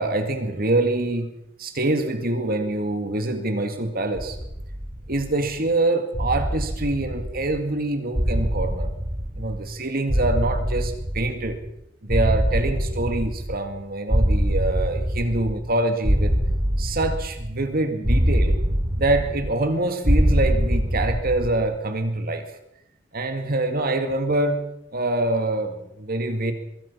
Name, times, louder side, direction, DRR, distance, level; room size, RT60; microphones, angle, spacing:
voice 1, 0.0-1.3 1.6-4.4 5.1-8.9 9.4-11.6 12.0-16.3 16.8-18.6 19.0-22.5 23.1-24.7 24.9-26.5, right 2 dB, 50° right, 7 dB, 2.3 m, -25 dB
sound 1, 4.1-5.5 6.1-7.7 8.1-9.8 10.1-11.7 12.1-13.8 14.1-15.7 16.0-17.6 18.0-19.7 20.0-21.7, equal, 30° right, 3.0 m, -24 dB
24.5 x 22.5 x 5.8 m, 0.81 s
head